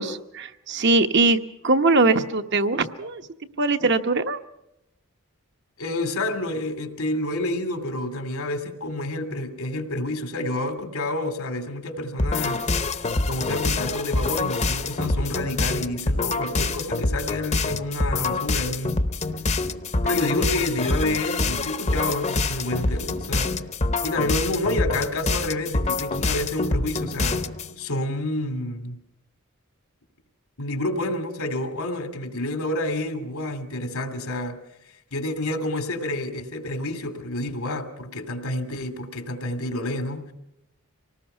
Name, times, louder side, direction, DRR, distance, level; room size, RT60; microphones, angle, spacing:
voice 1, 0.0-3.2 3.6-4.4, right 3 dB, 55° right, 7 dB, 1.0 m, -21 dB
voice 2, 5.8-12.6 13.3-19.0 20.0-23.5 24.0-27.4 27.8-29.0 30.6-34.6 35.1-40.3, left 1 dB, 90° left, 7 dB, 2.6 m, -28 dB
sound 1, 12.2-27.7, left 3 dB, 30° left, 0.8 m, -26 dB
25.5 x 19.0 x 5.6 m, 0.85 s
head